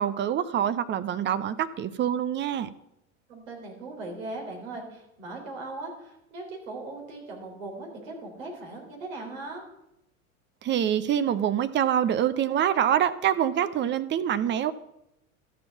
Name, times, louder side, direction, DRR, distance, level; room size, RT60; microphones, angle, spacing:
voice 1, 0.0-2.7 10.6-14.7, right 10 dB, 25° right, 14 dB, 0.6 m, -25 dB
voice 2, 3.3-9.6, right 2 dB, 70° right, 1 dB, 3.9 m, -39 dB
13.0 x 5.3 x 6.9 m, 0.84 s
hypercardioid pair, 85°, 41 cm